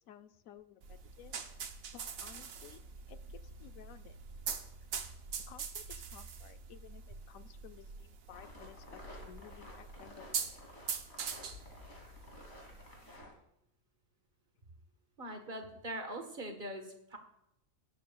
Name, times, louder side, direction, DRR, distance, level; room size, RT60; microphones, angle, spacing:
voice 1, 0.1-1.3 1.9-4.2 5.4-10.6, left 10 dB, 85° left, 10 dB, 1.0 m, -56 dB
sound 1, 0.8-13.2, right 6 dB, 80° right, 1.3 m, -44 dB
sound 2, 8.3-13.3, left 2 dB, 55° left, 2.9 m, -52 dB
voice 2, 15.2-17.2, right 1 dB, 40° right, 4 dB, 1.5 m, -42 dB
18.5 x 8.5 x 2.3 m, 0.80 s
omnidirectional pair, 1.4 m